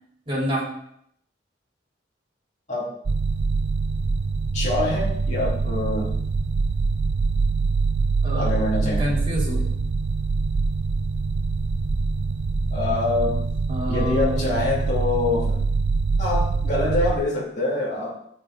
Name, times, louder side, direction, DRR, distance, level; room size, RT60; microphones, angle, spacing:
voice 1, 0.3-0.7 8.2-9.7 13.7-14.5, equal, 30° right, -5 dB, 4.3 m, -28 dB
sound 1, 3.1-17.1, right 4 dB, 70° right, 0.6 m, -24 dB
voice 2, 4.5-6.1 8.4-9.1 12.7-13.4 13.9-15.6 16.2-18.2, left 2 dB, 40° left, -7 dB, 2.7 m, -25 dB
14.5 x 5.9 x 4.0 m, 0.71 s
head